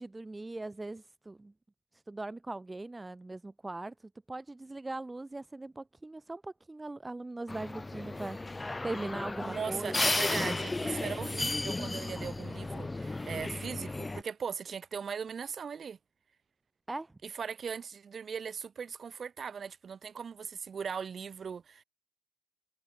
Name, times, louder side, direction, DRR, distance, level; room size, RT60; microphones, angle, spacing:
voice 1, 0.0-1.5 1.9-10.1 16.9-17.1, right 2 dB, 10° right, 1.4 m, -40 dB
sound 1, 7.5-14.2, left 2 dB, 10° left, 0.4 m, -34 dB
voice 2, 9.4-16.0 17.2-21.8, right 6 dB, 35° right, 3.8 m, -39 dB
cardioid pair, 145°, 0 cm